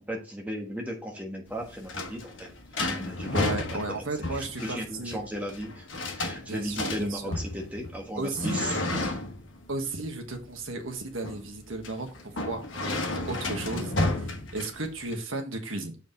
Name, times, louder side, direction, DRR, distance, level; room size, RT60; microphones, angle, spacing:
voice 1, 0.0-2.5 2.8-4.0 4.3-5.9 6.2-9.0, equal, 10° right, 0 dB, 1.4 m, -36 dB
sound 1, 1.5-15.1, left 2 dB, 70° left, 1.3 m, -33 dB
voice 2, 3.3-5.2 6.5-7.3 8.1-8.7 9.7-16.0, right 2 dB, 85° right, 5 dB, 1.4 m, -34 dB
6.9 x 5.0 x 3.9 m, 0.33 s
head